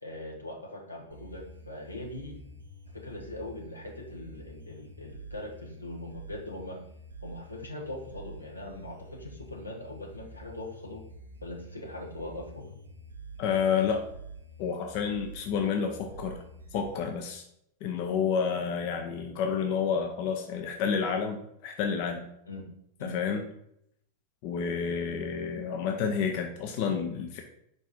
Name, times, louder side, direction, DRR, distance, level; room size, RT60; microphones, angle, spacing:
voice 1, 0.0-2.4 2.9-6.8 7.2-11.0 11.4-12.8 22.5-22.7 23.0-23.1, left 1 dB, 80° left, 0 dB, 1.2 m, -41 dB
sound 1, 1.1-17.1, right 2 dB, 80° right, 1.2 m, -48 dB
voice 2, 13.4-14.1 14.6-16.4 16.7-17.4 17.8-22.3 23.0-23.4 24.4-27.4, left 6 dB, 45° left, 4 dB, 0.7 m, -30 dB
5.0 x 4.7 x 4.3 m, 0.74 s
figure-of-eight pair, 90°, 0 cm